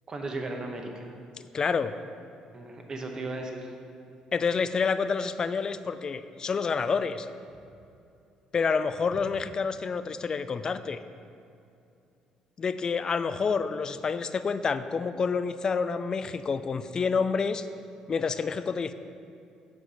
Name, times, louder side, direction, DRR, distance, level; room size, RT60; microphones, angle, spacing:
voice 1, 0.1-1.1 2.5-3.7, right 2 dB, 35° right, 3 dB, 0.9 m, -36 dB
voice 2, 1.4-2.0 4.3-7.3 8.5-11.0 12.6-17.7 18.1-18.9, left 5 dB, 35° left, 12 dB, 0.3 m, -28 dB
6.5 x 4.7 x 5.5 m, 2.6 s
cardioid pair, 95°, 2 cm